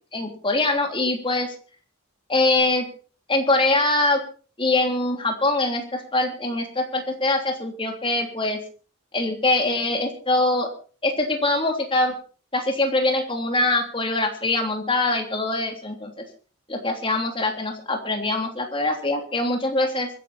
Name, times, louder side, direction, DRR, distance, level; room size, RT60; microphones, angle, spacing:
voice 1, 0.1-1.5 2.3-2.8 3.3-4.2 4.6-8.6 9.1-10.7 11.0-12.1 12.5-16.1 16.7-20.1, left 2 dB, 25° left, 3 dB, 3.2 m, -23 dB
24.5 x 10.5 x 4.3 m, 0.40 s
head